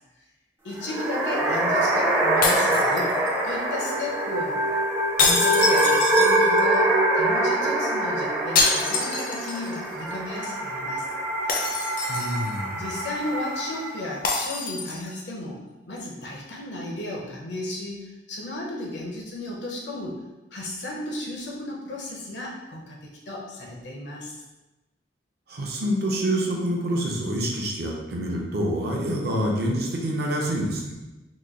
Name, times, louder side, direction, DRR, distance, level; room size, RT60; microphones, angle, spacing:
voice 1, 0.6-3.2 3.4-4.6 5.2-11.1 11.5-11.7 12.7-15.6 15.9-20.2 20.5-24.4, left 2 dB, 80° left, -2 dB, 0.8 m, -34 dB
sound 1, 0.7-14.1, right 1 dB, 10° right, 0.5 m, -24 dB
sound 2, 2.4-3.5 5.2-6.8 8.6-9.8 10.1-10.2 11.5-12.6 14.2-15.2, left 3 dB, 50° left, 0.5 m, -26 dB
voice 2, 12.1-12.9 25.5-30.9, equal, 60° right, -1 dB, 0.6 m, -27 dB
3.1 x 2.3 x 3.7 m, 1.1 s
head